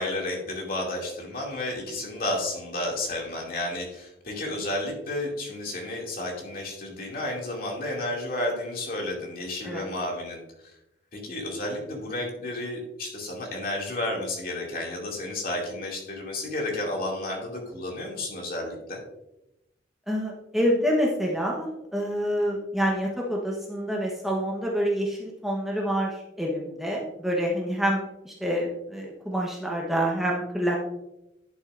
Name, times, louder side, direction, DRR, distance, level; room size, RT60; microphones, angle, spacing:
voice 1, 0.0-10.4 11.1-19.0, left 1 dB, 50° left, -1 dB, 2.4 m, -32 dB
voice 2, 20.1-30.8, equal, ahead, -3 dB, 1.0 m, -27 dB
11.0 x 7.3 x 2.5 m, 0.89 s
head